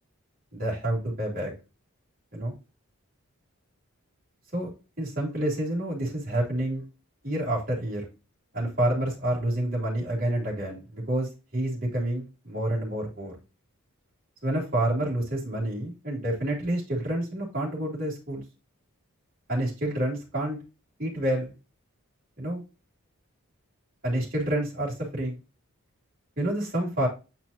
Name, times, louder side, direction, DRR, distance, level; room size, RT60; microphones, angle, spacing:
voice 1, 0.5-1.5 2.3-2.5 4.5-4.7 5.0-6.8 7.2-8.1 8.5-13.3 14.4-18.4 19.5-20.6 21.0-21.5 22.4-22.6 24.0-25.4 26.4-27.1, right 1 dB, 40° right, -5 dB, 2.9 m, -28 dB
8.3 x 4.4 x 2.8 m, 0.29 s
head